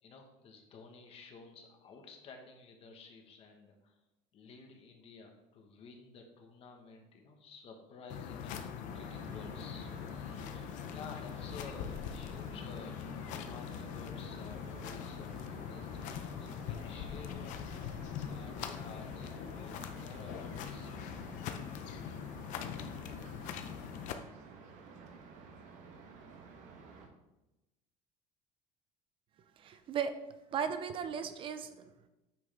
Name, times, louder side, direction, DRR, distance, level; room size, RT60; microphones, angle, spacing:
voice 1, 0.0-3.9 4.3-17.8 18.2-20.9, left 4 dB, 40° left, 3 dB, 1.5 m, -53 dB
sound 1, 8.1-24.1, left 8 dB, 60° left, 0.8 m, -42 dB
sound 2, 8.9-27.1, right 4 dB, 60° right, 1.3 m, -53 dB
voice 2, 29.6-30.1 30.5-31.9, right 7 dB, 35° right, 10 dB, 0.5 m, -36 dB
8.6 x 6.4 x 3.5 m, 0.98 s
cardioid pair, 150°, 14 cm